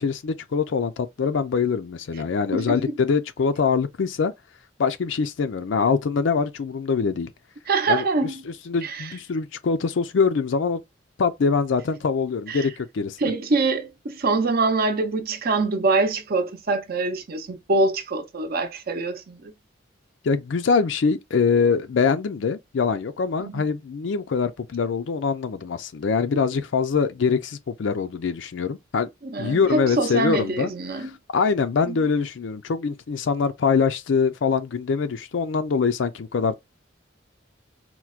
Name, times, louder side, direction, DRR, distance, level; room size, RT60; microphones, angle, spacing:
voice 1, 0.0-4.3 4.8-7.3 7.9-10.8 11.2-13.3 20.2-29.1 29.4-30.7 31.0-36.6, left 5 dB, 70° left, 0.4 m, -24 dB
voice 2, 2.5-2.9 7.7-8.4 8.8-9.0 12.5-12.6 13.2-19.5 23.4-23.7 29.2-31.1 31.9-32.1, right 3 dB, 50° right, 0.7 m, -24 dB
4.4 x 2.1 x 2.4 m
head